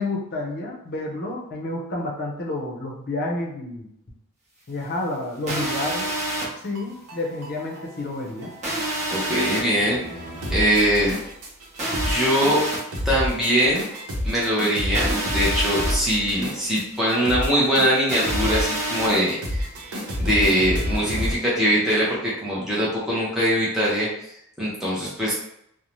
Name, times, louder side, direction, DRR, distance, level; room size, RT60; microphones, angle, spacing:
voice 1, 0.0-3.9 4.7-6.1 6.6-8.5, left 2 dB, 45° left, -1 dB, 0.6 m, -30 dB
sound 1, 5.4-21.3, equal, 90° right, 0.7 m, -30 dB
sound 2, 5.5-6.5 8.6-9.6 11.8-12.8 14.9-15.9 18.1-19.1, right 1 dB, 30° right, 0.8 m, -27 dB
voice 2, 8.7-10.0 10.5-11.1 11.9-12.6 13.0-13.8 14.2-19.6 20.2-24.3 24.6-25.3, equal, ahead, -8 dB, 0.5 m, -22 dB
2.6 x 2.0 x 3.0 m, 0.75 s
head